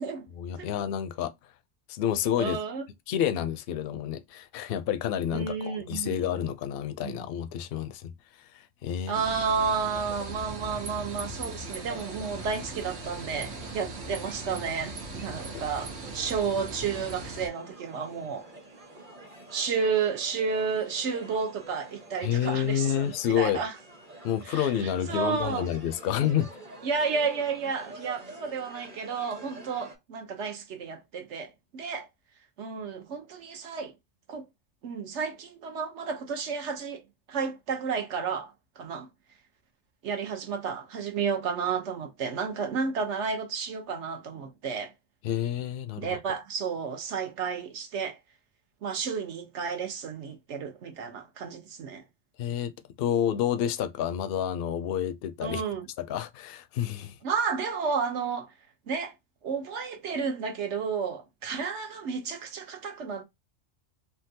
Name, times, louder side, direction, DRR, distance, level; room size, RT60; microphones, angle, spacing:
voice 1, 0.4-1.3 1.9-2.6 3.1-8.1 8.4-9.2 15.5-15.6 22.2-23.6 24.2-26.5 45.2-46.2 52.4-52.7 53.0-55.6 56.0-57.2, left 10 dB, 65° left, 0.7 m, -29 dB
voice 2, 2.4-2.8 5.3-6.3 7.0-7.3 9.1-18.4 19.5-23.7 24.5-25.6 26.8-32.1 32.6-33.9 34.3-34.5 34.8-37.0 37.3-39.1 40.0-44.9 46.0-48.2 48.8-52.0 55.4-55.9 57.2-58.5 58.9-59.1 59.4-63.2, right 5 dB, 70° right, 1.1 m, -32 dB
sound 1, 9.1-17.5, right 2 dB, 85° right, 1.3 m, -39 dB
sound 2, 11.6-29.9, right 1 dB, 30° right, 1.0 m, -48 dB
3.8 x 2.3 x 2.7 m
omnidirectional pair, 1.3 m